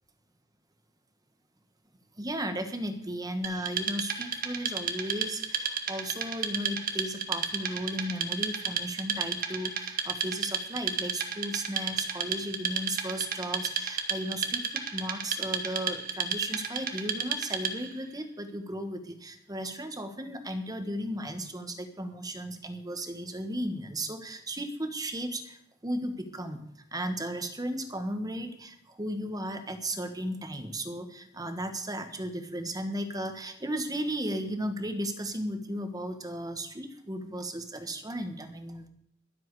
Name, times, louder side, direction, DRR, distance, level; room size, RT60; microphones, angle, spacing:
voice 1, 2.2-26.6 26.9-38.9, right 1 dB, 20° right, 7 dB, 1.5 m, -35 dB
Wood, 3.4-18.0, right 6 dB, 50° right, 1.3 m, -33 dB
22.5 x 7.6 x 4.8 m, 0.72 s
head